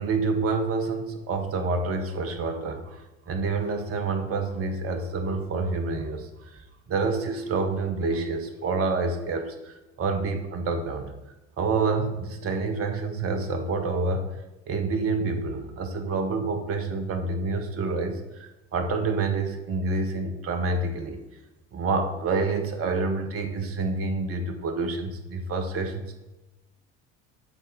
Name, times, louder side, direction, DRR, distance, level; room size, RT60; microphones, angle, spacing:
voice 1, 0.0-11.1 11.6-14.3 14.7-21.2 21.7-26.2, right 3 dB, 35° right, 6 dB, 1.0 m, -28 dB
8.9 x 3.8 x 4.0 m, 1.0 s
figure-of-eight pair, 60°, 38 cm